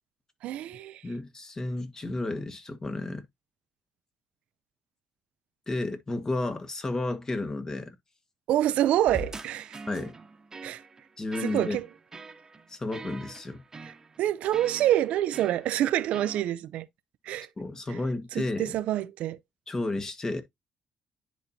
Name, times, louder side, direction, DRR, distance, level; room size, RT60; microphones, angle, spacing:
voice 1, 0.4-1.0 8.5-9.8 10.6-10.8 11.4-11.9 13.8-13.9 14.2-16.9 17.2-17.5 17.9-18.0 18.3-19.4, right 12 dB, 80° right, 0.5 m, -27 dB
voice 2, 1.0-3.3 5.7-8.0 9.9-10.1 11.2-11.8 12.7-13.6 17.6-18.7 19.7-20.4, left 2 dB, 30° left, 1.5 m, -32 dB
sound 1, 9.1-16.4, right 3 dB, 30° right, 1.1 m, -43 dB
10.0 x 4.2 x 2.7 m
cardioid pair, 85°, 2 cm